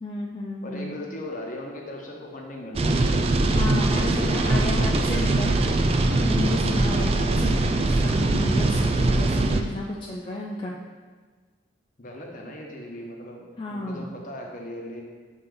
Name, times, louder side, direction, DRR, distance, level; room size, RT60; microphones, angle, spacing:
voice 1, 0.0-1.0 3.5-5.5 6.2-10.8 13.6-14.1, left 2 dB, 30° left, -3 dB, 0.4 m, -32 dB
voice 2, 0.6-3.5 4.2-5.8 6.6-7.0 12.0-15.0, left 1 dB, 45° left, 0 dB, 1.0 m, -38 dB
sound 1, 2.7-9.6, right 2 dB, 35° right, 0.4 m, -22 dB
7.2 x 4.0 x 3.8 m, 1.5 s
head